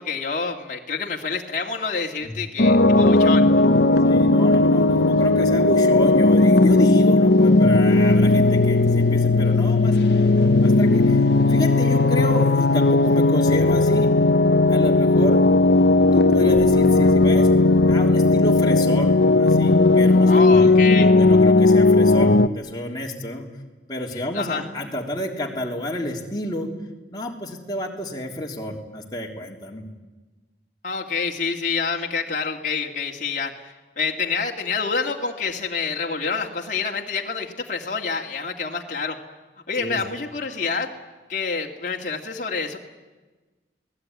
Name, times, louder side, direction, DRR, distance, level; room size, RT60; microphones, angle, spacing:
voice 1, 0.0-3.5 20.3-21.1 24.1-24.6 30.8-39.2 39.7-40.9 41.3-42.8, left 4 dB, 45° left, 0 dB, 2.3 m, -27 dB
sound 1, 2.6-22.5, left 2 dB, 65° left, 0.9 m, -16 dB
voice 2, 4.0-10.0 10.6-11.2 11.5-14.1 14.7-15.4 16.1-17.5 17.9-23.5 23.9-26.7 27.1-29.9 39.8-40.0, equal, 20° left, 0 dB, 3.3 m, -29 dB
29.0 x 19.0 x 9.7 m, 1.3 s
head